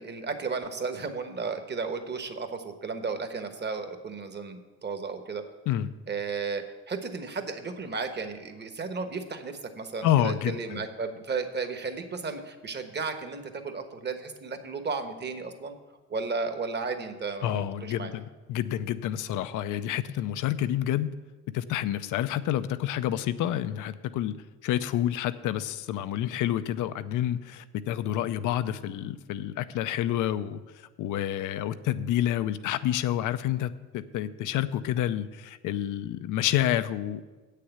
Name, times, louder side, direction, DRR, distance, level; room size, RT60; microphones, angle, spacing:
voice 1, 0.0-5.4 6.1-15.8 16.1-18.1, right 4 dB, 35° right, 7 dB, 1.2 m, -34 dB
voice 2, 10.0-10.9 17.4-18.2 18.5-21.1 21.5-24.4 24.6-30.6 31.0-37.3, left 12 dB, 85° left, 13 dB, 0.6 m, -28 dB
8.5 x 6.7 x 8.0 m, 1.2 s
cardioid pair, 90°, 30 cm